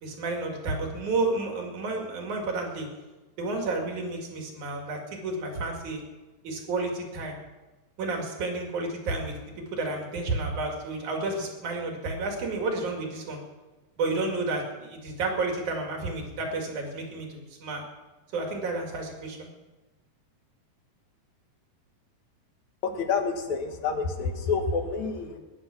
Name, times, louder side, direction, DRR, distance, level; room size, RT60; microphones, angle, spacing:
voice 1, 0.0-2.9 3.4-6.0 6.4-7.4 8.0-9.3 9.7-13.4 14.0-17.8 18.3-19.5, right 3 dB, 85° right, 1 dB, 3.9 m, -31 dB
voice 2, 22.8-25.4, left 5 dB, 75° left, 4 dB, 2.8 m, -28 dB
20.0 x 10.0 x 6.0 m, 1.2 s
omnidirectional pair, 3.4 m